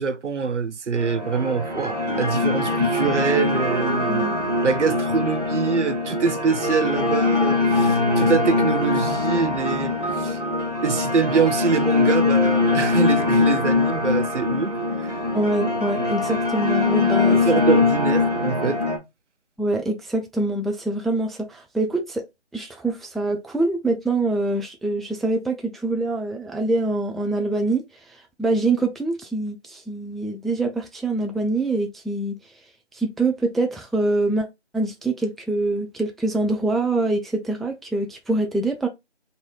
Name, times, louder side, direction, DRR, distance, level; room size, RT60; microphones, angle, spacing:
voice 1, 0.0-4.3 4.6-10.4 10.8-14.8 15.0-15.2 17.3-18.8, right 5 dB, 85° right, 0.6 m, -24 dB
sound 1, 0.9-19.0, left 3 dB, 35° right, 0.7 m, -22 dB
voice 2, 15.3-17.6 19.6-22.2 22.5-27.8 28.4-32.3 32.9-34.5 34.7-38.9, right 2 dB, ahead, 0.3 m, -24 dB
2.6 x 2.2 x 3.0 m
figure-of-eight pair, 175°, 35 cm